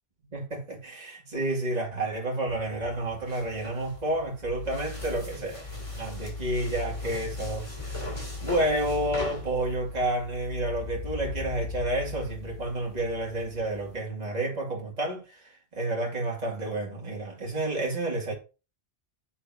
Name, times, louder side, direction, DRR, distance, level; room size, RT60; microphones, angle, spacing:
voice 1, 0.3-5.6 6.0-8.1 8.4-18.3, right 1 dB, 40° right, 2.5 m, -30 dB
sound 1, 2.5-14.0, left 2 dB, 30° left, 3.3 m, -38 dB
9.7 x 7.9 x 2.8 m
omnidirectional pair, 1.0 m